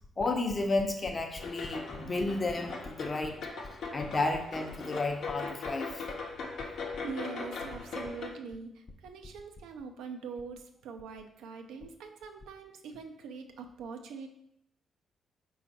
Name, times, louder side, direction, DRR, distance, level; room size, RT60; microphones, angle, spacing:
voice 1, 0.2-3.4 3.9-6.0, left 2 dB, 35° left, 5 dB, 0.6 m, -32 dB
sound 1, 1.4-8.3, left 4 dB, 75° left, 0.7 m, -40 dB
voice 2, 7.0-14.3, right 5 dB, 85° right, 4 dB, 0.4 m, -43 dB
4.3 x 2.4 x 4.0 m, 0.78 s
supercardioid pair, 65°, 0 cm